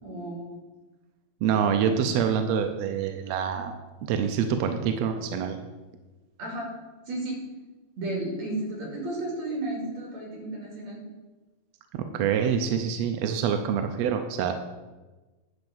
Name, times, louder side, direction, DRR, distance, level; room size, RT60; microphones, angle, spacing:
voice 1, 0.0-0.6 1.8-2.0 6.4-6.7 7.1-7.4 8.0-11.0, right 2 dB, 60° right, -1 dB, 3.6 m, -33 dB
voice 2, 1.4-5.6 11.9-14.5, right 7 dB, 75° right, 6 dB, 1.6 m, -26 dB
10.5 x 4.7 x 7.0 m, 1.2 s
omnidirectional pair, 3.5 m